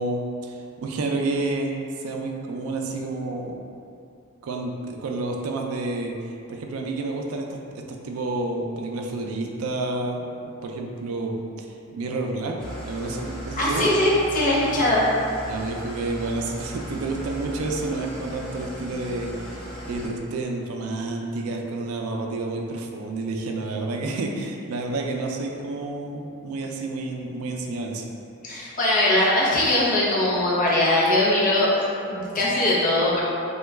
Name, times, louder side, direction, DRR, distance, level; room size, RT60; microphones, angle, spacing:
voice 1, 0.0-3.6 4.4-6.1 6.5-10.3 10.6-11.7 11.9-12.6 12.8-13.9 15.5-19.3 19.8-28.0, right 2 dB, 80° right, 1 dB, 0.4 m, -29 dB
Engine starting / Idling, 12.6-20.1, equal, 5° left, 0.7 m, -37 dB
voice 2, 13.6-15.1 28.4-31.7 32.1-33.2, left 1 dB, 40° left, -6 dB, 0.6 m, -21 dB
3.0 x 2.2 x 3.3 m, 2.5 s
head